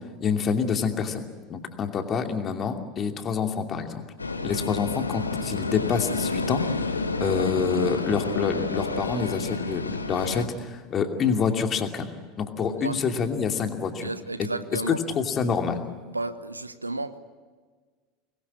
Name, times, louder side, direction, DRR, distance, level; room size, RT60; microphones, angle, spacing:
voice 1, 0.2-1.2 1.5-4.0 4.4-6.9 7.2-12.1 12.4-14.1 14.7-15.8, left 6 dB, 30° left, 5 dB, 2.7 m, -27 dB
sound 1, 4.2-10.4, left 3 dB, 80° left, 1.3 m, -29 dB
voice 2, 12.6-13.0 14.0-15.0 16.1-17.2, right 2 dB, 85° right, 14 dB, 1.0 m, -33 dB
25.5 x 21.5 x 8.6 m, 1.5 s
figure-of-eight pair, 75°, 0 cm